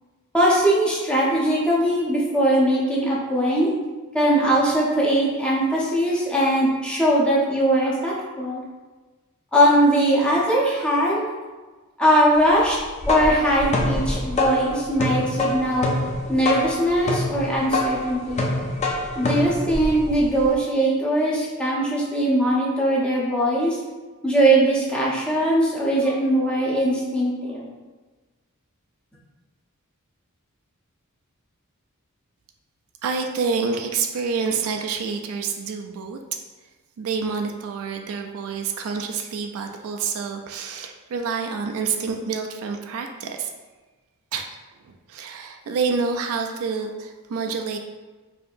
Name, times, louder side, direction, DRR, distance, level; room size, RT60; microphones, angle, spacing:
voice 1, 0.3-3.7 4.1-8.6 9.5-11.2 12.0-12.8 13.1-15.9 16.3-18.5 19.1-23.8 24.2-27.7, right 1 dB, 5° left, -6 dB, 0.7 m, -20 dB
sound 1, 12.8-20.5, left 2 dB, 30° left, 0.4 m, -26 dB
voice 2, 33.0-36.2 37.0-43.5 44.3-44.5 44.8-47.8, right 5 dB, 65° right, 4 dB, 0.3 m, -27 dB
4.5 x 2.7 x 2.5 m, 1.3 s
head